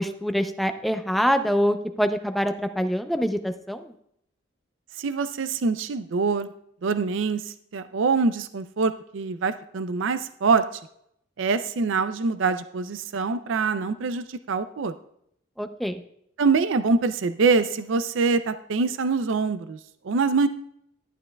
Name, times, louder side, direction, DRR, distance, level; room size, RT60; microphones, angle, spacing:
voice 1, 0.0-3.8 15.6-16.0, equal, ahead, 7 dB, 0.5 m, -25 dB
voice 2, 5.0-6.5 6.8-10.6 11.4-14.9 16.4-19.8 20.0-20.5, right 4 dB, 60° right, 11 dB, 0.4 m, -24 dB
12.0 x 11.0 x 2.3 m, 0.72 s
head